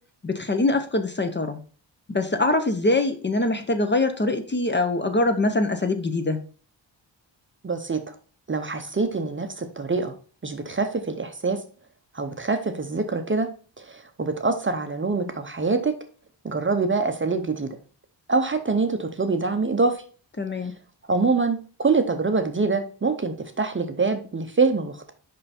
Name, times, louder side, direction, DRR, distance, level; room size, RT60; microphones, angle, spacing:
voice 1, 0.2-1.6 2.1-6.4 20.4-20.7, left 2 dB, 25° left, 7 dB, 0.6 m, -23 dB
voice 2, 7.6-8.1 8.5-10.1 10.4-11.6 12.1-13.5 13.8-15.9 16.4-17.7 18.3-20.0 21.1-25.1, right 4 dB, 25° right, 7 dB, 0.6 m, -25 dB
5.5 x 5.4 x 4.2 m, 0.39 s
wide cardioid pair, 165°, 45 cm